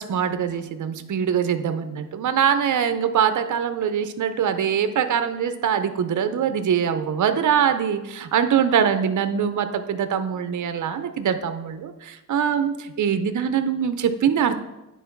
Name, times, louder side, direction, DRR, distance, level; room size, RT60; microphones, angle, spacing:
voice 1, 0.0-14.6, right 8 dB, 60° right, 10 dB, 0.7 m, -23 dB
9.2 x 3.8 x 5.9 m, 0.97 s
cardioid pair, 75°, 35 cm